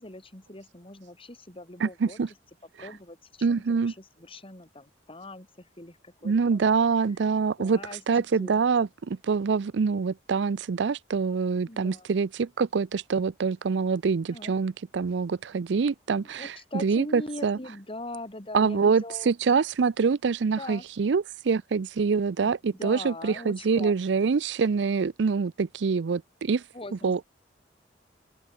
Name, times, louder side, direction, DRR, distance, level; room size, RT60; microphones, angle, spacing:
voice 1, 0.0-2.3 2.8-7.0 7.6-8.6 11.7-12.2 14.3-14.5 16.1-19.3 20.6-20.8 22.4-23.9 26.7-27.2, left 2 dB, 30° left, 3.2 m, -42 dB
voice 2, 1.8-2.3 3.4-3.9 6.2-7.8 8.1-17.6 18.5-26.6 27.0-27.2, right 5 dB, 70° right, 0.5 m, -25 dB
open air
head